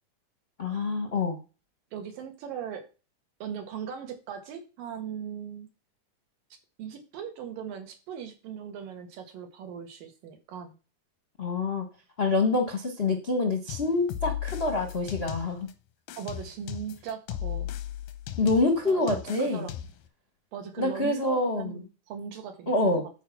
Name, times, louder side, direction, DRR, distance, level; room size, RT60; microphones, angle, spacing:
voice 1, 0.6-1.4 11.4-11.8 12.2-15.7 18.4-19.6 20.8-21.7 22.7-23.0, left 2 dB, 60° left, 3 dB, 0.6 m, -26 dB
voice 2, 1.9-2.9 3.4-5.7 6.8-10.7 16.2-17.7 18.4-18.5 18.8-19.7 20.5-23.1, right 7 dB, 90° right, 5 dB, 3.4 m, -39 dB
sound 1, 13.7-15.7 16.1-20.1, left 11 dB, 90° left, 2.6 m, -36 dB
10.5 x 4.8 x 5.9 m, 0.33 s
omnidirectional pair, 3.8 m